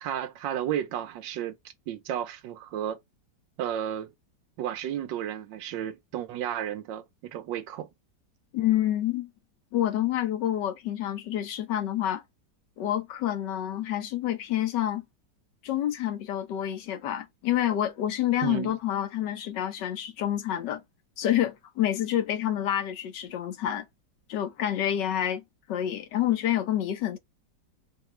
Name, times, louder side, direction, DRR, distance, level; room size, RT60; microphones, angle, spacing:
voice 1, 0.0-1.6 1.9-3.0 3.6-4.1 4.6-7.9 18.4-18.7, right 10 dB, 85° right, 1.4 m, -33 dB
voice 2, 8.5-9.3 9.7-12.2 12.8-15.0 15.6-20.8 21.2-23.9 24.3-25.4 25.7-27.2, left 11 dB, 75° left, 1.4 m, -28 dB
4.7 x 2.3 x 3.2 m
omnidirectional pair, 1.9 m